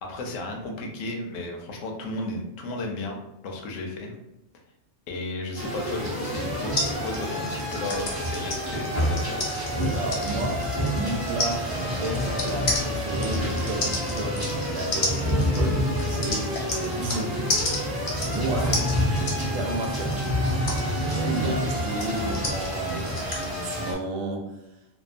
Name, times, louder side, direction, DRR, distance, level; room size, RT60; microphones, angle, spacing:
voice 1, 0.0-3.2 3.4-4.1 5.1-9.5 18.6-18.8 21.4-21.5, left 2 dB, 80° left, 1 dB, 1.0 m, -34 dB
sound 1, 5.6-23.9, equal, 25° right, 0.5 m, -28 dB
sound 2, 5.9-20.9, right 2 dB, 60° right, 0.9 m, -45 dB
sound 3, 6.8-17.2 17.5-23.5, left 2 dB, 55° left, 0.7 m, -32 dB
voice 2, 9.9-16.5 16.8-17.5 18.1-18.7 19.2-20.2 21.0-24.4, right 2 dB, 85° right, 2 dB, 1.0 m, -32 dB
2.7 x 2.2 x 2.4 m, 0.89 s
omnidirectional pair, 1.3 m